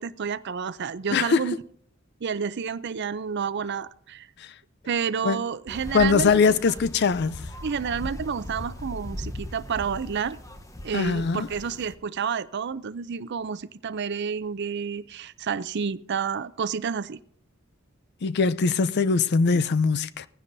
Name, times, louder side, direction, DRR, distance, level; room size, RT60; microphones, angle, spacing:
voice 1, 0.0-1.6 2.2-4.3 4.9-6.6 7.6-10.4 10.8-17.2, right 6 dB, 55° right, 0.5 m, -30 dB
voice 2, 1.1-1.4 4.4-4.5 5.2-5.4 5.9-7.4 10.9-11.5 18.2-20.3, left 5 dB, 55° left, 0.5 m, -22 dB
sound 1, 5.7-11.9, left 1 dB, 15° left, 0.9 m, -39 dB
18.0 x 15.0 x 2.7 m
head